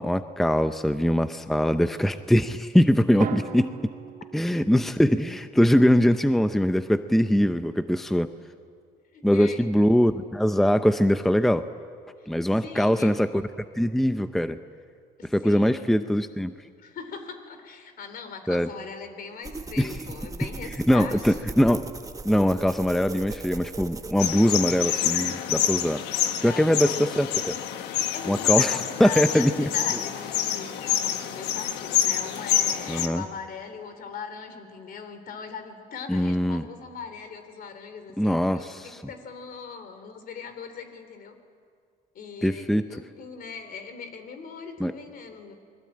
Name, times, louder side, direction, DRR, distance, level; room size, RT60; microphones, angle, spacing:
voice 1, 0.0-3.9 4.3-8.3 9.2-11.7 12.3-13.4 13.8-14.6 15.3-16.5 18.5-18.7 19.8-19.9 20.9-21.9 22.2-26.0 26.4-27.6 28.3-29.7 32.9-33.2 36.1-36.6 38.2-39.0 42.4-42.8 44.8-44.9, equal, ahead, 10 dB, 0.7 m, -22 dB
Drum, 3.2-5.2, right 7 dB, 55° right, 2.4 m, -37 dB
voice 2, 9.1-9.7 12.2-12.3 12.6-13.1 15.2-15.9 16.8-21.4 26.4-27.1 28.1-38.7 39.1-41.4 42.1-45.5, left 5 dB, 60° left, 8 dB, 3.5 m, -40 dB
sound 1, 19.4-24.6, right 3 dB, 20° right, 1.2 m, -38 dB
sound 2, 24.2-33.1, left 10 dB, 85° left, 1.4 m, -27 dB
29.0 x 21.5 x 8.7 m, 2.2 s
cardioid pair, 110°, 17 cm